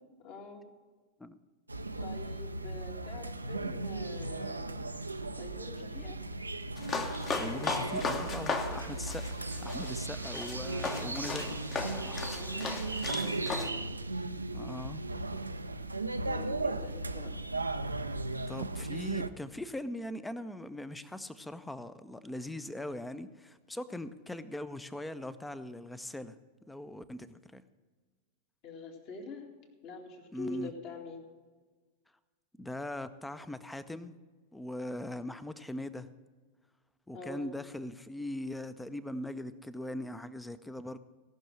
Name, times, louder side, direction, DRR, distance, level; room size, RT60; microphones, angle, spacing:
voice 1, 0.2-0.6 2.0-4.8 5.4-6.2 12.2-12.9 13.2-13.7 16.2-17.3 28.6-29.4 29.8-31.2 37.1-37.5, left 3 dB, 45° left, 3 dB, 2.1 m, -45 dB
sound 1, 1.7-19.3, right 2 dB, 80° right, 0.5 m, -36 dB
sound 2, 6.8-13.7, left 4 dB, 25° left, 1.1 m, -37 dB
voice 2, 7.4-11.6 14.5-15.0 18.5-26.4 26.7-27.6 30.3-30.7 32.6-34.2 34.5-36.1 37.1-41.0, left 1 dB, 5° left, 14 dB, 0.6 m, -40 dB
17.5 x 6.2 x 6.2 m, 1.4 s
figure-of-eight pair, 90°, 0 cm